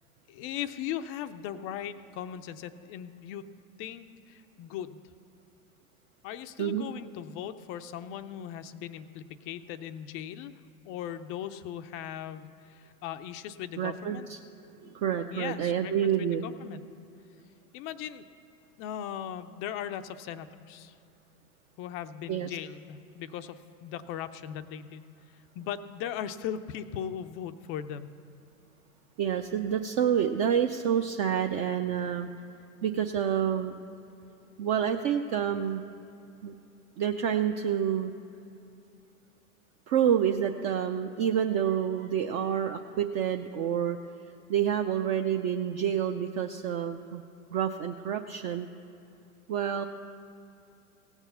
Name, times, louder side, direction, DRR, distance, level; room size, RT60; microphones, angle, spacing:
voice 1, 0.3-3.5 3.8-5.0 6.2-10.5 10.8-14.3 15.3-16.8 17.7-18.2 18.8-21.0 21.8-28.1, left 10 dB, 30° left, 10 dB, 0.4 m, -38 dB
voice 2, 13.8-14.4 14.8-16.5 22.3-22.5 29.2-32.3 32.8-33.8 34.6-35.8 36.4-36.5 37.0-38.1 39.9-44.0 44.5-47.2 47.5-48.7 49.5-49.9, right 9 dB, 40° right, 4 dB, 0.6 m, -28 dB
16.5 x 7.2 x 6.7 m, 2.7 s
hypercardioid pair, 100°, 45 cm